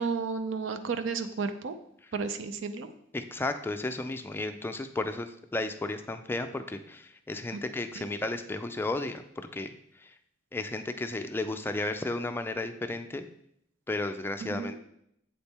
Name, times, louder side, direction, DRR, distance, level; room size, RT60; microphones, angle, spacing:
voice 1, 0.0-1.8 2.1-2.9 8.0-8.1 14.4-14.7, right 5 dB, 75° right, 9 dB, 0.5 m, -32 dB
voice 2, 3.1-10.1 10.5-13.3 13.9-14.8, left 2 dB, 10° left, 7 dB, 0.3 m, -34 dB
7.8 x 4.2 x 3.5 m, 0.74 s
head